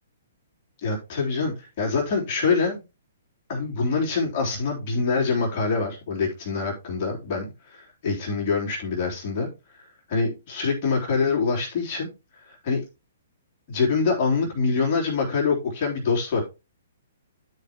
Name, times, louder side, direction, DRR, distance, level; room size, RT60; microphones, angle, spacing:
voice 1, 0.8-2.8 3.5-12.1 12.5-12.8 13.7-16.4, left 4 dB, 40° left, -3 dB, 3.2 m, -25 dB
12.5 x 5.0 x 3.0 m, 0.28 s
figure-of-eight pair, 120°, 0 cm